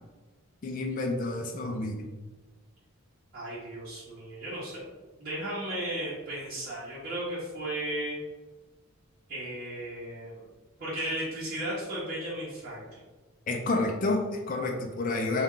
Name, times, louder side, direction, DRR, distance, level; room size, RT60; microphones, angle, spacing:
voice 1, 0.6-2.1 13.5-15.4, left 2 dB, 35° left, 2 dB, 0.4 m, -29 dB
voice 2, 3.3-4.8 5.2-8.2 9.3-10.4 10.8-13.0, right 1 dB, 40° right, -9 dB, 0.9 m, -35 dB
4.2 x 2.4 x 3.6 m, 1.2 s
head